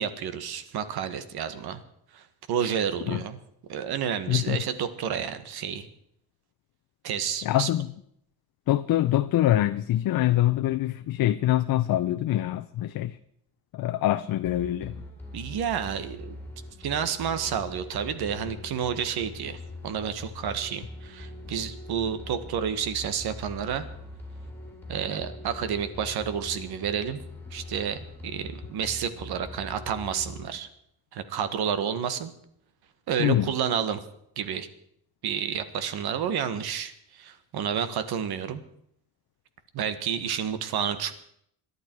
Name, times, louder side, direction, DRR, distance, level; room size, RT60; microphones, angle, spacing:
voice 1, 0.0-1.8 2.1-3.4 3.7-5.9 7.0-7.7 15.3-16.4 16.8-23.9 24.9-27.2 27.5-30.7 31.1-32.3 33.1-34.0 34.4-34.7 35.2-38.6 39.7-41.1, right 8 dB, 75° right, 11 dB, 1.7 m, -30 dB
voice 2, 4.3-4.6 7.4-7.9 8.7-13.2 13.7-15.0 33.2-33.5, left 13 dB, 60° left, 10 dB, 0.7 m, -24 dB
sound 1, 14.4-30.4, left 1 dB, 5° left, 3.1 m, -42 dB
27.0 x 11.5 x 4.6 m, 0.71 s
cardioid pair, 150°, 38 cm